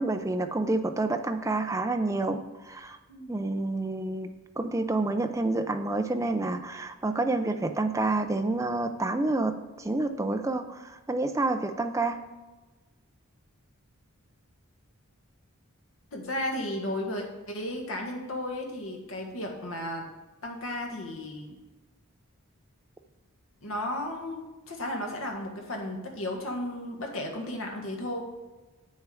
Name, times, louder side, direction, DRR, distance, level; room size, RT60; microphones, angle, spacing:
voice 1, 0.0-3.0 3.3-4.3 4.6-12.2, right 2 dB, 15° right, 6 dB, 0.4 m, -28 dB
voice 2, 16.1-20.0 20.4-21.6 23.6-28.2, left 1 dB, 65° left, 1 dB, 1.5 m, -34 dB
8.1 x 6.4 x 4.9 m, 1.2 s
head